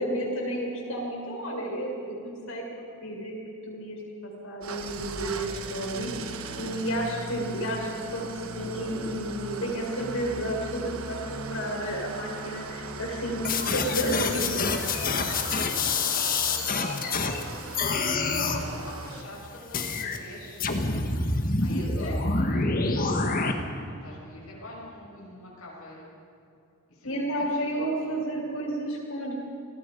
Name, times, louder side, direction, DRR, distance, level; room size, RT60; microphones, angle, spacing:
voice 1, 0.0-3.3 3.7-6.1 6.6-13.4 13.7-14.7 22.0-22.2 27.0-29.3, right 1 dB, 70° left, -1 dB, 6.5 m, -31 dB
Engine starting / Idling, 4.6-19.2, right 3 dB, 80° right, 1.3 m, -39 dB
voice 2, 5.8-6.8 15.1-20.6 21.6-26.1 26.9-28.2, left 1 dB, 85° left, -5 dB, 6.3 m, -45 dB
sound 1, 13.4-17.4 17.7-18.6 19.7-20.2 20.6-23.5, left 4 dB, 40° left, 1.6 m, -27 dB
29.0 x 19.5 x 5.4 m, 2.6 s
head